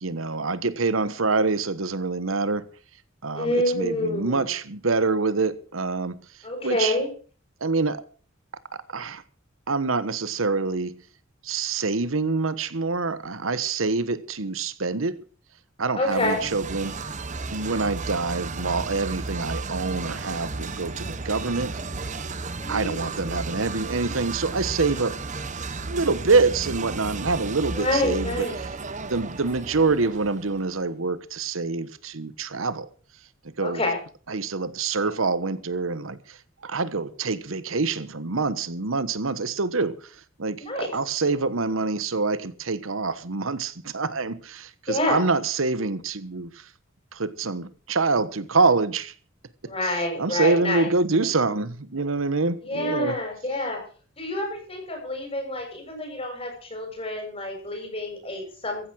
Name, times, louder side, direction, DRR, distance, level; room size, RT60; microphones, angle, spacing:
voice 1, 0.0-2.7 3.2-6.2 6.6-6.9 7.6-8.0 8.9-9.2 9.7-11.0 11.4-15.2 15.8-17.0 17.5-21.8 22.7-25.2 25.6-28.5 29.1-32.9 33.6-33.8 34.3-36.4 36.6-40.1 40.4-46.6 47.1-49.1 50.2-53.1, right 3 dB, 90° right, 1.2 m, -26 dB
voice 2, 3.3-4.5 6.4-7.1 16.0-16.4 22.6-23.4 27.7-28.6 33.6-34.0 40.6-40.9 44.9-45.2 49.6-50.9 52.6-53.8 54.2-58.9, left 1 dB, 30° left, 7.2 m, -28 dB
sound 1, 16.1-30.8, right 3 dB, 40° right, 1.1 m, -34 dB
15.0 x 10.5 x 6.3 m
head